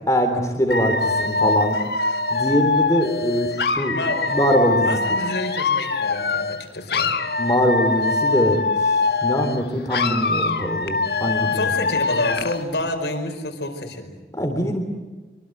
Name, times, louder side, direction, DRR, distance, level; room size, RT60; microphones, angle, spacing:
voice 1, 0.1-1.8 2.3-4.0 4.3-5.0 7.4-8.9 9.2-11.7 14.3-14.8, equal, 20° left, 5 dB, 3.5 m, -22 dB
Dog / Alarm, 0.7-6.6 6.9-9.6 9.9-12.6, left 3 dB, 65° left, 1.6 m, -23 dB
voice 2, 3.9-7.2 11.5-14.1, left 1 dB, 80° left, 4 dB, 5.0 m, -28 dB
25.5 x 24.5 x 8.0 m, 1.3 s
head